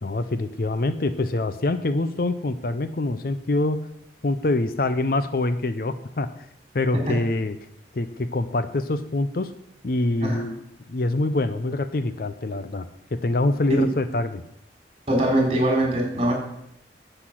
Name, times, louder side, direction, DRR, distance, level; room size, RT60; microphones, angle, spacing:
voice 1, 0.0-3.8 4.2-6.3 6.7-7.6 7.9-9.5 9.8-10.6 10.9-14.4, left 2 dB, 55° left, 11 dB, 0.5 m, -25 dB
voice 2, 15.1-16.3, right 1 dB, 35° right, -2 dB, 4.1 m, -22 dB
10.0 x 7.9 x 6.1 m, 0.78 s
head